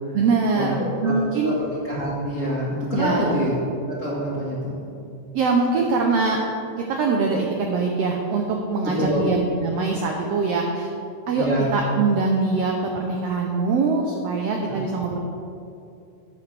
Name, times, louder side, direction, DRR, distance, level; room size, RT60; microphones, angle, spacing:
voice 1, 0.1-1.5 2.9-3.3 5.3-6.4 6.9-10.9 11.3-15.2, right 4 dB, 85° right, 1 dB, 1.4 m, -23 dB
voice 2, 1.0-3.5 3.8-4.8 8.8-9.2 11.4-11.7 14.7-14.8, equal, 35° left, -8 dB, 1.3 m, -26 dB
13.5 x 7.5 x 3.3 m, 2.6 s
omnidirectional pair, 3.7 m